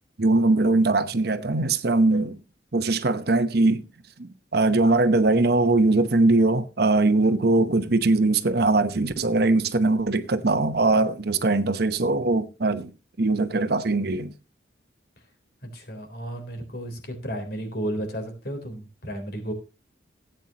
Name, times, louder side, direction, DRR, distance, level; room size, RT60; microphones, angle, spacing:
voice 1, 0.2-2.4 2.7-3.8 4.2-12.9 13.2-14.3, right 2 dB, 60° right, 0.9 m, -21 dB
voice 2, 15.6-19.5, right 1 dB, 55° left, 3.7 m, -33 dB
16.5 x 9.0 x 2.9 m
head